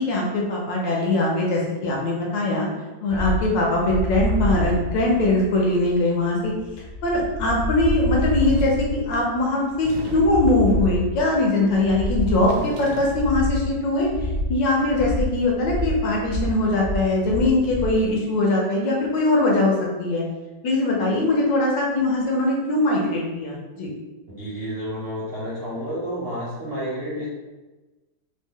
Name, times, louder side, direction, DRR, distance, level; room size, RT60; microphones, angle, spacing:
voice 1, 0.0-2.7 3.0-6.5 7.0-14.1 14.5-20.2 20.6-23.9, left 2 dB, 75° left, -3 dB, 1.4 m, -21 dB
sound 1, 3.1-18.0, left 2 dB, 90° left, 0.5 m, -28 dB
sound 2, 8.3-8.9 9.7-10.5 12.2-13.3, right 1 dB, 75° right, 1.2 m, -36 dB
voice 2, 24.4-27.3, equal, 55° right, -9 dB, 0.6 m, -30 dB
3.3 x 2.1 x 3.6 m, 1.1 s
omnidirectional pair, 2.2 m